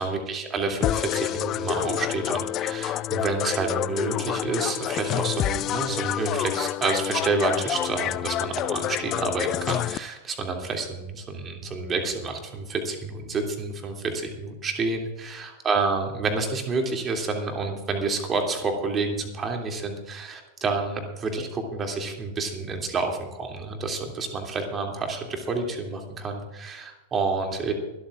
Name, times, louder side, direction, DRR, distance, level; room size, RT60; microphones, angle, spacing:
voice 1, 0.0-15.1 15.6-27.7, right 3 dB, 25° right, 3 dB, 2.7 m, -29 dB
sound 1, 0.8-10.0, left 13 dB, 35° left, 0.4 m, -28 dB
24.0 x 13.0 x 2.5 m, 1.0 s
figure-of-eight pair, 90°, 0 cm